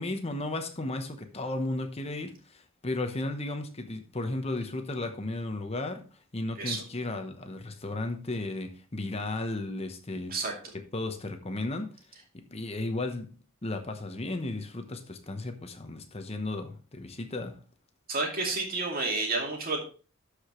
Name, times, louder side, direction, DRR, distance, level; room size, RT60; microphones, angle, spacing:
voice 1, 0.0-6.0 6.3-10.4 10.7-11.9 12.3-13.3 13.6-17.6, left 2 dB, 30° left, 1.0 m, -34 dB
voice 2, 18.1-19.8, right 3 dB, 45° right, 2.4 m, -30 dB
12.5 x 5.0 x 3.1 m
head